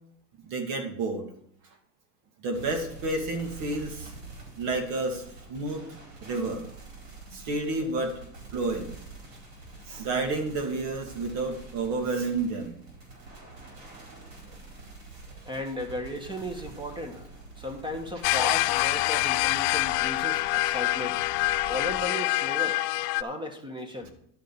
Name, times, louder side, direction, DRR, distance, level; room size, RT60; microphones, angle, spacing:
voice 1, 0.4-1.3 2.4-4.1 4.6-5.8 6.2-6.6 7.3-8.1 8.5-8.9 9.9-12.8, right 3 dB, 60° right, 4 dB, 2.4 m, -30 dB
sound 1, 2.5-22.0, right 3 dB, 90° right, 4.7 m, -46 dB
voice 2, 15.3-17.3 17.6-21.2 21.7-22.8 23.2-24.1, left 1 dB, 10° right, 5 dB, 1.5 m, -35 dB
sound 2, 18.2-23.2, left 20 dB, 60° left, 0.5 m, -26 dB
11.0 x 5.1 x 7.0 m, 0.70 s
supercardioid pair, 110°, 39 cm